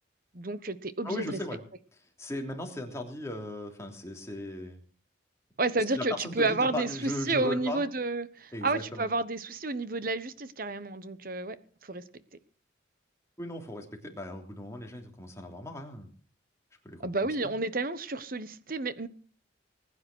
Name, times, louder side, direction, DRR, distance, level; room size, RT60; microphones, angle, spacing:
voice 1, 0.3-1.4 5.6-11.6 11.8-12.0 17.0-19.1, right 3 dB, 45° right, 1.2 m, -31 dB
voice 2, 1.0-1.6 2.2-4.8 5.9-7.8 8.5-9.0 13.4-16.1 16.8-17.0 17.4-17.5, left 1 dB, 15° left, 3.3 m, -37 dB
20.5 x 9.7 x 6.2 m
head